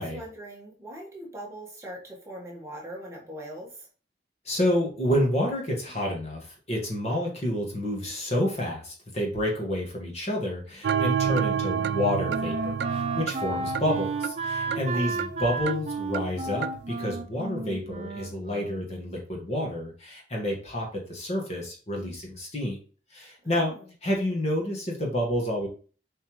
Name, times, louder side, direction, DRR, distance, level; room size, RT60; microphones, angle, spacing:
voice 1, 0.0-3.9 14.7-15.1 23.4-23.8, right 1 dB, 15° right, -3 dB, 1.7 m, -41 dB
voice 2, 4.5-22.8 23.1-23.7 24.0-25.7, left 1 dB, 35° left, 0 dB, 2.0 m, -29 dB
sound 1, 10.8-16.9, right 8 dB, 75° right, 0.3 m, -30 dB
Wind instrument woodwind instrument, 11.2-19.0, right 3 dB, 35° right, 0.7 m, -33 dB
7.4 x 4.2 x 3.2 m, 0.38 s
head